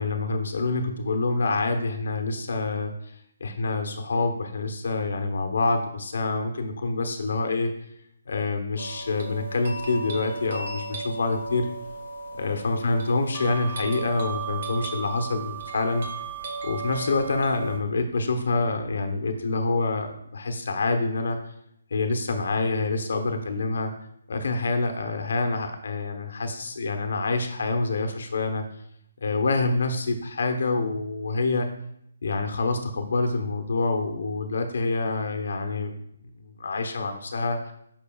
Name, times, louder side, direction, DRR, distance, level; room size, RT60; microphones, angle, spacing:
voice 1, 0.0-7.7 8.3-11.7 12.4-16.1 16.6-21.4 21.9-23.9 24.3-28.6 29.2-31.7 32.2-35.9 36.4-37.7, left 3 dB, 70° left, 5 dB, 0.9 m, -26 dB
sound 1, 8.8-17.8, right 4 dB, 55° right, 1.3 m, -35 dB
8.6 x 5.4 x 2.3 m, 0.73 s
hypercardioid pair, 160°, 0 cm